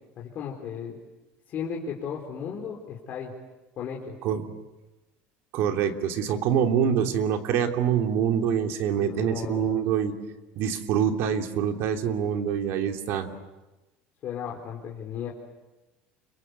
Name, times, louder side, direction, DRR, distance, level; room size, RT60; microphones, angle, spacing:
voice 1, 0.2-1.0 1.5-3.3 3.8-4.2 9.0-9.8 14.2-15.3, left 7 dB, 45° left, -2 dB, 4.2 m, -35 dB
voice 2, 5.5-10.1 10.6-13.3, right 8 dB, 60° right, 5 dB, 3.1 m, -25 dB
29.5 x 24.0 x 8.3 m, 1.1 s
cardioid pair, 135°, 5 cm